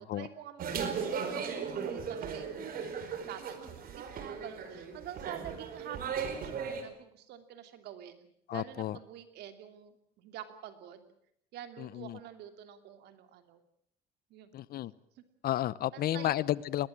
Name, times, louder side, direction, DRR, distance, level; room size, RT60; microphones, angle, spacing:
voice 1, 0.1-2.8 3.3-11.1 11.5-13.6 14.3-14.5 15.2-15.3 15.9-16.3, right 10 dB, 80° right, 8 dB, 2.9 m, -47 dB
sound 1, 0.6-6.8, right 6 dB, 60° right, 4.7 m, -37 dB
voice 2, 8.5-9.0 11.8-12.2 14.5-14.9 15.4-16.9, left 13 dB, 65° left, 19 dB, 0.9 m, -32 dB
21.5 x 20.0 x 8.7 m, 0.69 s
cardioid pair, 110°, 17 cm